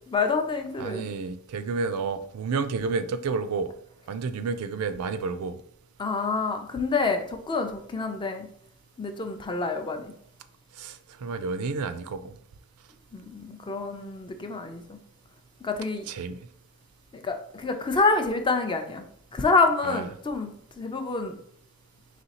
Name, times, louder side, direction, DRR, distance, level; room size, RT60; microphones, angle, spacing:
voice 1, 0.1-1.1 6.0-8.5 9.0-10.1 13.1-15.0 15.6-16.1 17.1-19.0 19.3-21.4, left 3 dB, 20° left, 6 dB, 0.4 m, -27 dB
voice 2, 0.8-3.7 4.1-5.6 10.8-12.4 16.1-16.4 19.8-20.1, right 4 dB, 90° right, 11 dB, 0.4 m, -30 dB
4.1 x 3.1 x 2.8 m, 0.66 s
head